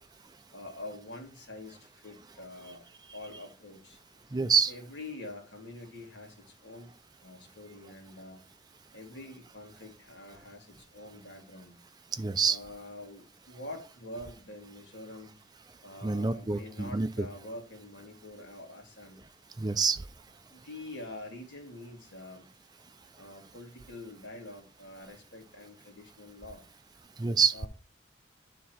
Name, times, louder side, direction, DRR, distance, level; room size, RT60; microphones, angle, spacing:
voice 1, 0.5-2.9 3.1-4.0 4.7-6.9 7.2-8.4 8.9-11.8 12.4-15.3 15.8-19.2 20.5-22.5 23.2-26.6 27.5-27.7, left 2 dB, 75° left, 2.1 m, -46 dB
voice 2, 4.3-4.7 12.2-12.6 16.0-17.3 19.6-20.0 27.2-27.5, right 5 dB, 20° right, 0.4 m, -26 dB
9.2 x 3.6 x 4.3 m
head